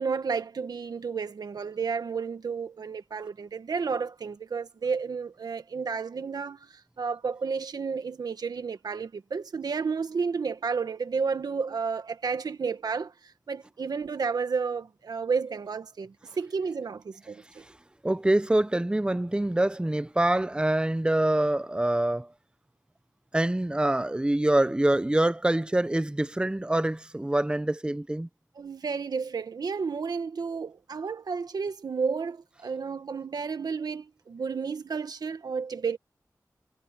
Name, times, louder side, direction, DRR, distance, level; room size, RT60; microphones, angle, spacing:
voice 1, 0.0-17.6 28.6-36.0, right 5 dB, 90° right, 1.5 m, -32 dB
voice 2, 18.0-22.3 23.3-28.3, right 1 dB, 15° right, 0.8 m, -25 dB
wide cardioid pair, 65°, 7 cm